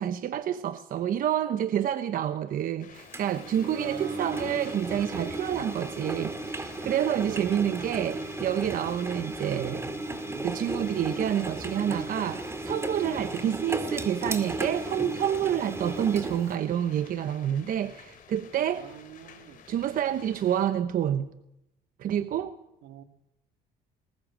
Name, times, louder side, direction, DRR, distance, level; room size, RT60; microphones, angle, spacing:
voice 1, 0.0-9.9 10.4-18.9 19.7-21.3 22.0-22.6, right 10 dB, 55° right, 1.0 m, -28 dB
sound 1, 2.8-20.7, left 7 dB, 55° left, 3.5 m, -51 dB
Engine, 3.1-16.6, right 2 dB, 15° right, 2.2 m, -35 dB
voice 2, 3.7-4.7 7.3-8.1 18.8-19.6 22.8-23.0, right 10 dB, 80° right, 2.0 m, -45 dB
20.5 x 18.0 x 7.4 m
cardioid pair, 110°, 17 cm